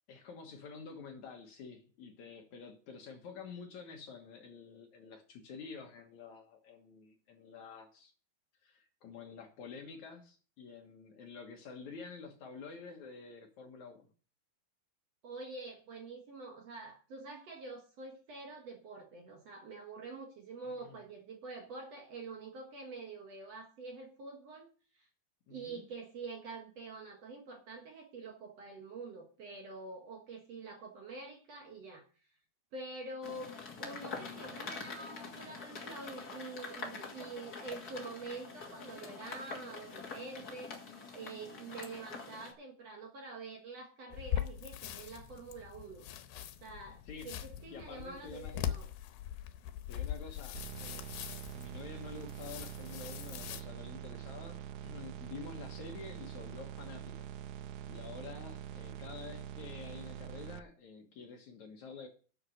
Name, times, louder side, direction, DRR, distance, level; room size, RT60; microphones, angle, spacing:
voice 1, 0.1-8.1 8.6-14.1 20.6-21.0 25.5-25.9 47.1-47.4 47.7-48.7 49.9-57.3 57.9-62.1, left 5 dB, 60° left, 3 dB, 2.3 m, -49 dB
voice 2, 15.2-24.7 24.9-25.1 25.5-32.0 32.7-33.5 33.8-46.1 46.6-48.9, right 3 dB, 55° right, 2 dB, 2.1 m, -46 dB
sound 1, 33.2-42.5, left 4 dB, 35° left, 1.7 m, -45 dB
sound 2, 44.1-53.6, left 10 dB, 90° left, 2.6 m, -41 dB
sound 3, 50.5-60.6, right 10 dB, 80° right, 1.8 m, -45 dB
11.0 x 6.6 x 6.4 m, 0.40 s
omnidirectional pair, 4.3 m